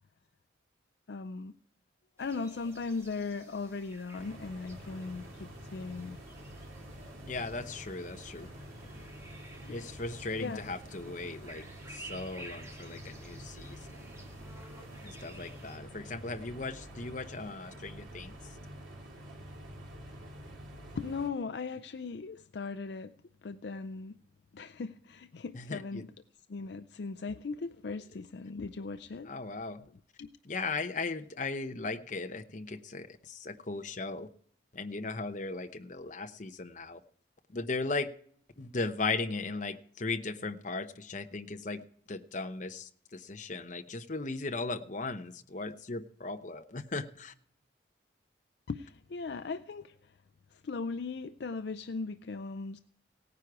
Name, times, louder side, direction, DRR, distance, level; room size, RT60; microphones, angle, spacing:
voice 1, 1.1-1.5 2.2-6.2 9.6-9.8 10.3-10.8 11.0-11.1 21.0-23.1 23.4-24.2 24.5-26.2 26.5-29.3 29.9-30.3 48.7-50.1 50.5-52.8, left 4 dB, 60° left, 11 dB, 0.4 m, -38 dB
sound 1, 2.2-15.8, right 1 dB, 15° right, 1.6 m, -53 dB
sound 2, 4.1-21.3, equal, 90° right, 2.7 m, -48 dB
voice 2, 7.3-8.5 9.7-14.1 15.0-18.4 25.5-26.1 29.2-29.9 30.4-34.3 34.7-37.0 37.5-38.1 38.6-41.8 42.1-47.3, left 3 dB, 40° left, 8 dB, 0.8 m, -37 dB
17.5 x 9.7 x 4.8 m, 0.62 s
head